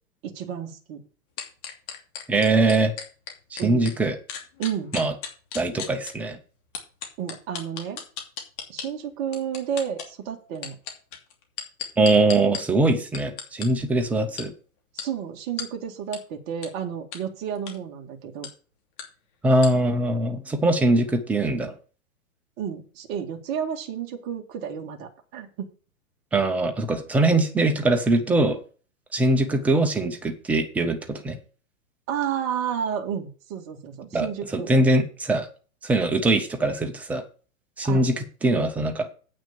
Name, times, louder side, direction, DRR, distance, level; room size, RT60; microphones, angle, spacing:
voice 1, 0.2-1.0 3.6-3.9 4.6-4.9 7.2-8.0 8.7-10.8 14.9-18.5 22.6-25.7 32.1-34.9 37.8-38.1, right 8 dB, 30° right, 2 dB, 2.1 m, -31 dB
sound 1, 1.4-3.9 4.3-6.1 6.7-8.9 9.3-10.1 10.6-12.6 13.1-13.7 14.4-14.5 15.0-15.1 15.6-15.7 16.1-16.2 16.6-16.7 17.1-17.2 17.6-17.8 18.4-18.5 19.0-19.1 19.6-19.7, left 8 dB, 40° left, 2.9 m, -34 dB
voice 2, 2.3-2.9 3.5-4.2 4.9-5.1 5.5-6.4 12.0-14.5 19.4-21.7 26.3-28.6 29.1-31.4 34.1-35.5 35.8-37.2 37.8-39.1, right 2 dB, 5° right, 5 dB, 0.5 m, -22 dB
8.7 x 6.3 x 6.8 m, 0.38 s
hypercardioid pair, 140°, 43 cm